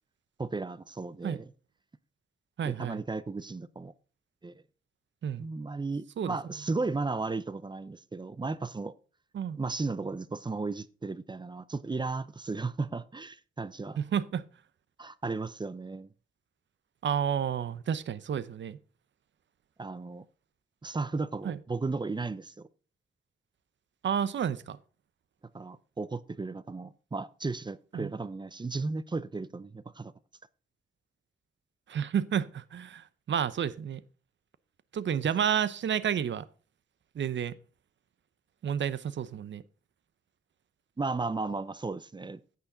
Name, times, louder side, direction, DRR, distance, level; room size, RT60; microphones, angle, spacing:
voice 1, 0.4-1.5 2.6-3.9 4.4-4.5 5.4-8.9 9.6-14.0 15.0-16.1 19.8-20.3 20.8-22.7 25.5-30.1 41.0-42.4, right 3 dB, 20° right, 0.6 m, -35 dB
voice 2, 2.6-3.0 5.2-5.5 6.2-6.4 9.3-9.6 14.0-14.4 17.0-18.8 21.4-21.6 24.0-24.8 27.9-28.1 31.9-34.0 34.9-36.5 37.1-37.5 38.6-39.6, right 8 dB, 70° right, 0.7 m, -30 dB
10.0 x 8.4 x 3.9 m
cardioid pair, 80°, 20 cm